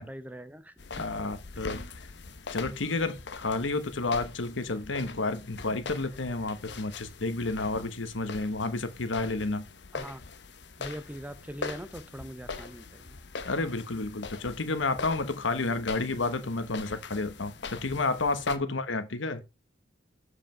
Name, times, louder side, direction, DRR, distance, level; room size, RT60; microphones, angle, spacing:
voice 1, 0.0-1.0 1.5-1.7 9.9-10.2 10.8-13.2 18.5-18.8, equal, 10° right, 0.5 m, -42 dB
sound 1, 0.8-18.6, left 4 dB, 65° left, 0.8 m, -42 dB
voice 2, 0.9-1.8 2.5-9.7 13.4-19.4, left 3 dB, 90° left, 1.1 m, -31 dB
7.6 x 5.0 x 4.4 m
head